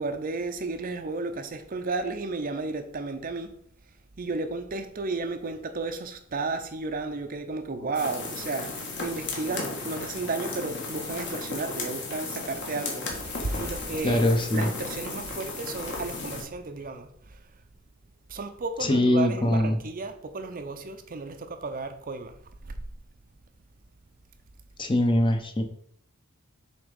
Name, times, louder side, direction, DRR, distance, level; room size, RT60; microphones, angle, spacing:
voice 1, 0.0-3.5 4.2-17.4 18.3-22.3 22.6-22.7, right 3 dB, 40° right, 0.6 m, -33 dB
sound 1, 7.9-16.4, left 3 dB, 55° left, 1.8 m, -35 dB
voice 2, 14.0-14.7 18.8-19.8 24.8-25.6, left 1 dB, 20° left, 0.7 m, -23 dB
7.2 x 3.5 x 5.1 m
head